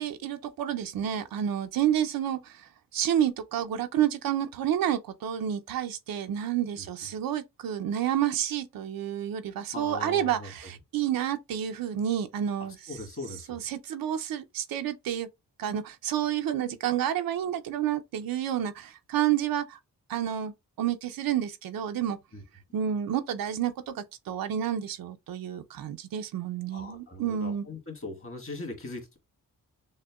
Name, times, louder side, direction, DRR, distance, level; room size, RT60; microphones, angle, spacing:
voice 1, 0.0-12.9 13.5-15.3 15.6-19.8 20.1-22.2 22.7-27.6, right 10 dB, 85° right, 0.6 m, -30 dB
voice 2, 9.7-10.5 12.6-13.6 22.3-22.4 26.7-29.2, left 2 dB, 40° left, 1.7 m, -40 dB
6.3 x 2.2 x 2.3 m
cardioid pair, 90°, 34 cm